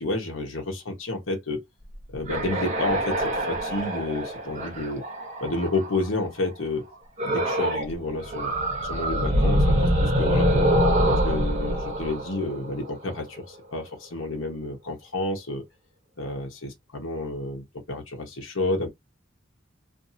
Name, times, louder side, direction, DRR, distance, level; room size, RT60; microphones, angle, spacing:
voice 1, 0.0-1.6 2.1-5.0 5.4-6.8 7.2-8.5 8.8-10.7 11.1-15.6 16.2-18.9, left 2 dB, 85° left, 1.1 m, -30 dB
sound 1, 1.9-6.1 7.2-7.9 8.2-13.1, equal, 35° right, 1.0 m, -25 dB
2.6 x 2.6 x 2.7 m
head